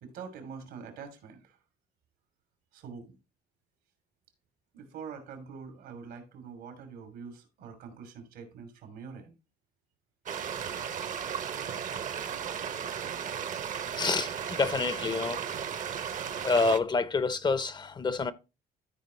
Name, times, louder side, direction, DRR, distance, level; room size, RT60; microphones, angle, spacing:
voice 1, 0.0-1.6 2.7-3.1 4.7-9.3 10.6-10.8, right 6 dB, 85° right, 2.8 m, -45 dB
sound 1, 10.3-16.8, right 8 dB, 50° right, 0.8 m, -35 dB
voice 2, 14.0-15.4 16.4-18.3, left 4 dB, 25° left, 0.6 m, -28 dB
13.5 x 4.8 x 3.1 m
cardioid pair, 110°, 17 cm